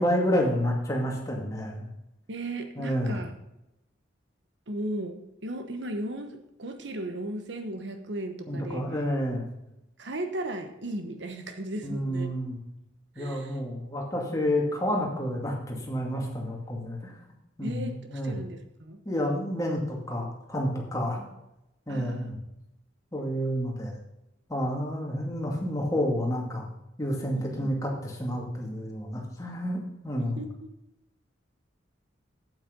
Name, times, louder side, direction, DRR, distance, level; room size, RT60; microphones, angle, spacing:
voice 1, 0.0-1.9 2.8-3.2 8.5-9.5 11.8-12.6 13.2-17.1 17.6-18.4 19.0-21.2 21.9-22.4 23.1-24.0 24.5-26.7 27.0-30.4, equal, 15° left, -1 dB, 2.3 m, -29 dB
voice 2, 2.3-3.3 4.7-8.9 10.0-12.3 13.2-13.5 17.6-19.0 21.2-21.3 21.9-22.3 27.3-27.7 30.2-30.7, right 1 dB, 65° right, 7 dB, 1.2 m, -36 dB
8.7 x 8.4 x 5.3 m, 0.88 s
head